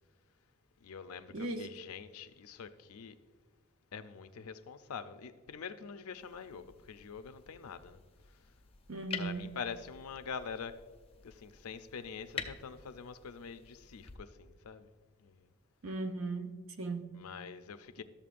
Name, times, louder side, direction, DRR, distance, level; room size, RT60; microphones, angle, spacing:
voice 1, 0.8-3.2 3.9-8.0 9.2-10.8 11.2-14.9 15.2-15.5 17.1-18.0, left 6 dB, 90° left, 0.5 m, -45 dB
voice 2, 1.3-1.7 8.9-9.4 15.8-17.1, right 3 dB, 75° right, 0.8 m, -37 dB
sound 1, 6.1-14.2, left 6 dB, 25° left, 0.5 m, -48 dB
12.5 x 7.0 x 2.5 m
head